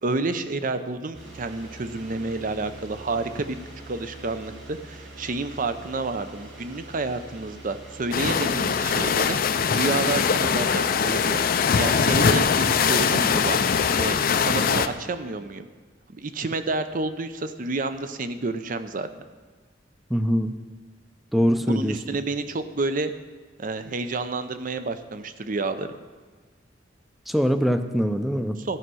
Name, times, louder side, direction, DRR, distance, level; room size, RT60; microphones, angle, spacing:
voice 1, 0.0-3.6 3.9-9.4 9.7-11.4 11.8-13.6 14.0-15.6 16.1-19.1 21.6-23.1 23.6-25.9 28.6-28.8, right 3 dB, 45° right, 10 dB, 0.6 m, -29 dB
sound 1, 1.1-14.9, right 1 dB, 80° right, 2.8 m, -43 dB
sound 2, 8.1-14.9, left 6 dB, 50° left, 0.4 m, -22 dB
voice 2, 20.1-20.5 21.3-22.0 27.3-28.6, equal, ahead, 8 dB, 0.5 m, -23 dB
13.5 x 5.7 x 6.2 m, 1.4 s
head